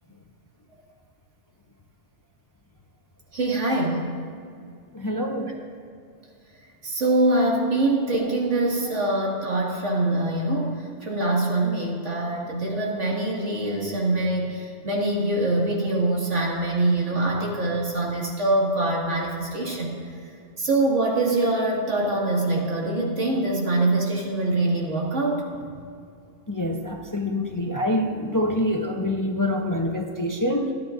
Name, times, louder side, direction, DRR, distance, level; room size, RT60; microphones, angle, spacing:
voice 1, 3.3-4.1 6.8-19.9 20.6-25.7, right 2 dB, 80° right, -3 dB, 2.3 m, -24 dB
voice 2, 4.9-5.5 26.5-30.7, left 1 dB, 25° left, 3 dB, 0.5 m, -26 dB
26.0 x 8.9 x 2.5 m, 2.4 s
omnidirectional pair, 1.2 m